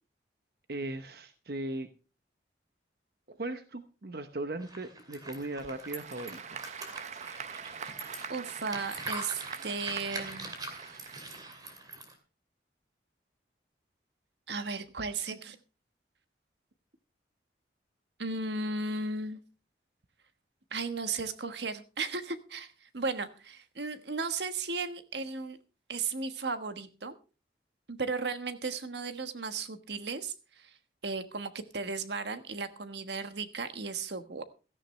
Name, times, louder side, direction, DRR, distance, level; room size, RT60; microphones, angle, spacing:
voice 1, 0.7-1.9 3.3-6.6, right 2 dB, 60° right, 9 dB, 0.9 m, -38 dB
sound 1, 4.6-12.1, right 2 dB, 25° right, 2.6 m, -43 dB
Applause / Crowd, 5.4-12.0, right 7 dB, 40° right, 0.6 m, -44 dB
voice 2, 8.3-10.5 14.5-15.6 18.2-19.4 20.7-25.6 25.9-27.2 27.9-30.8 31.0-34.4, right 4 dB, 75° right, 10 dB, 1.3 m, -35 dB
16.5 x 13.5 x 3.2 m, 0.33 s
head